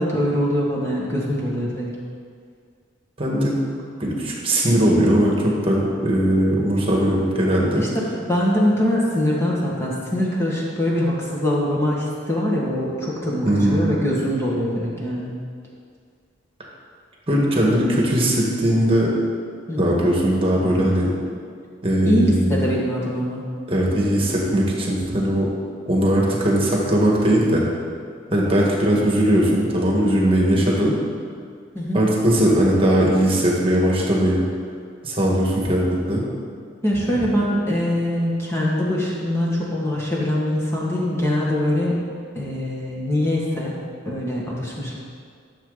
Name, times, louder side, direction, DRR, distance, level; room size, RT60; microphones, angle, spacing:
voice 1, 0.0-1.9 7.8-15.3 19.7-19.9 22.0-23.4 30.4-30.5 31.7-32.0 36.8-42.1 42.4-43.8 44.1-45.0, left 1 dB, 15° left, -5 dB, 1.9 m, -23 dB
voice 2, 3.2-3.6 4.0-7.8 13.4-13.9 17.3-19.1 19.8-21.1 21.8-22.7 23.7-25.5 25.8-27.6 28.3-30.9 31.9-34.4 35.0-36.2, right 1 dB, 30° right, -3 dB, 1.8 m, -19 dB
13.0 x 7.3 x 4.1 m, 2.1 s
head